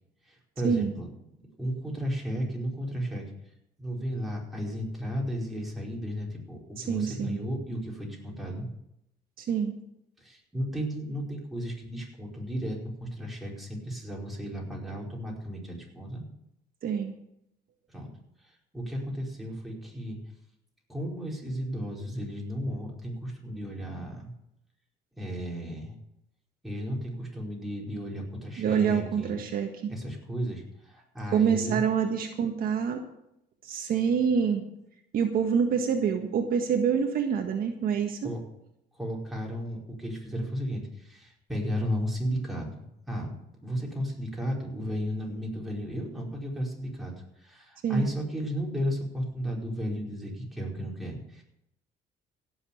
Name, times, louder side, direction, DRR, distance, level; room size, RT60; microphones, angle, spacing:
voice 1, 0.2-1.1 1.6-3.3 3.8-8.6 10.2-16.2 17.9-18.1 18.7-20.2 20.9-24.3 25.1-25.9 26.6-29.4 29.9-31.8 38.2-38.4 38.9-43.3 43.6-47.1 47.4-51.4, equal, ahead, -3 dB, 4.8 m, -34 dB
voice 2, 6.8-7.4 9.4-9.7 16.8-17.1 28.6-29.9 31.3-33.0 33.6-34.6 35.1-38.3 47.8-48.1, right 7 dB, 60° right, 4 dB, 1.6 m, -26 dB
16.5 x 7.2 x 7.2 m, 0.80 s
cardioid pair, 110°, 17 cm